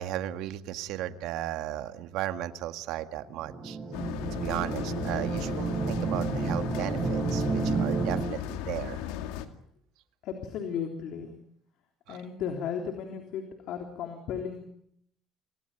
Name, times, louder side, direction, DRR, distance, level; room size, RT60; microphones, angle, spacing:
voice 1, 0.0-3.8 4.3-9.0 12.1-12.2, right 13 dB, 75° right, 8 dB, 1.8 m, -35 dB
sound 1, 3.3-8.2, right 4 dB, 25° right, 3.5 m, -30 dB
sound 2, 3.9-9.5, left 10 dB, 90° left, 2.2 m, -36 dB
voice 2, 10.2-11.4 12.1-14.7, left 7 dB, 65° left, 4 dB, 3.6 m, -35 dB
27.5 x 18.5 x 9.0 m, 0.70 s
cardioid pair, 115°, 0 cm